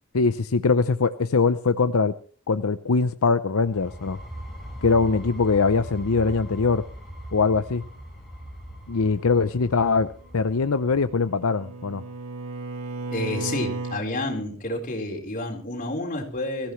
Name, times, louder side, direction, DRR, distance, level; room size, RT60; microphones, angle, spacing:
voice 1, 0.1-2.1 2.5-4.2 4.8-6.8 7.3-7.8 8.9-10.1 10.3-12.0, left 4 dB, 75° left, 11 dB, 0.7 m, -22 dB
sound 1, 3.6-11.2, equal, ahead, 5.4 m, -40 dB
Bowed string instrument, 10.7-14.1, right 3 dB, 80° right, 1.4 m, -34 dB
voice 2, 13.1-16.7, left 1 dB, 35° left, 0 dB, 4.3 m, -29 dB
23.0 x 15.0 x 3.2 m, 0.43 s
head